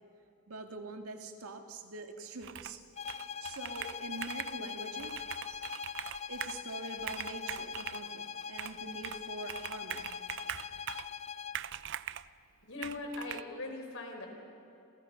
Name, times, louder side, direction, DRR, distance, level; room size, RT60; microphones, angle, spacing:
voice 1, 0.5-2.8 3.4-5.1 5.5-5.6 6.3-10.2, right 3 dB, 85° right, 4 dB, 2.2 m, -44 dB
Computer keyboard, 2.4-2.8 3.1-4.6 5.0-6.6 7.0-8.0 8.6-9.2 9.5-11.1 11.5-12.3 12.8-13.4, right 11 dB, 55° right, 0.5 m, -42 dB
sound 1, 3.0-11.7, left 6 dB, 30° left, 0.6 m, -42 dB
voice 2, 12.6-14.3, left 2 dB, 60° left, 3 dB, 5.1 m, -40 dB
29.0 x 28.5 x 5.9 m, 2.8 s
head